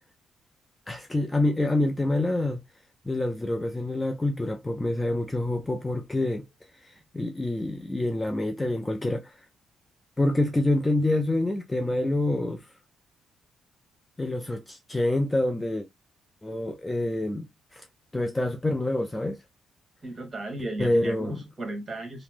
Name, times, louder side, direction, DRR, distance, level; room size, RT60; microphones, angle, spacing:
voice 1, 0.9-2.6 3.1-6.4 6.8-9.3 10.2-12.6 14.2-15.9 16.4-17.8 18.1-19.4 20.8-21.4, left 1 dB, 15° left, 0.4 m, -27 dB
voice 2, 20.0-22.2, right 1 dB, 30° right, 1.4 m, -35 dB
2.9 x 2.0 x 3.2 m
cardioid pair, 90°, 0 cm